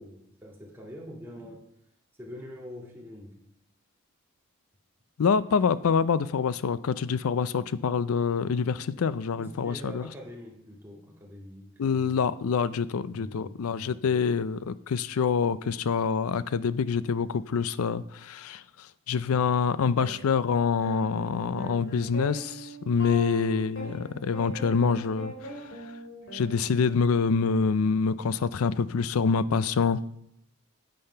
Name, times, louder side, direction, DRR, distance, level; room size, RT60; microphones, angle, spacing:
voice 1, 0.0-1.6 2.2-3.4 8.9-11.9 12.7-13.7, equal, 10° right, 1.9 m, -45 dB
voice 2, 5.2-10.0 11.8-18.6 19.1-25.3 26.3-30.0, left 5 dB, 85° left, 0.4 m, -26 dB
sound 1, 20.0-20.1 20.8-27.1, equal, 60° left, 3.0 m, -39 dB
8.7 x 7.8 x 5.6 m
head